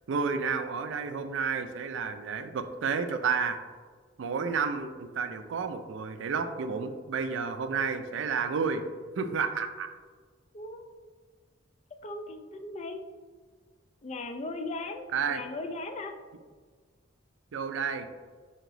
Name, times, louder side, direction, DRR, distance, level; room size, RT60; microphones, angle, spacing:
voice 1, 0.1-3.6 4.2-8.8 9.2-9.9 15.1-15.4 17.5-18.1, right 5 dB, 75° right, 9 dB, 0.4 m, -31 dB
voice 2, 10.5-10.8 12.0-13.0 14.0-16.2, left 2 dB, 35° left, 6 dB, 0.4 m, -38 dB
3.9 x 2.8 x 4.6 m, 1.5 s
head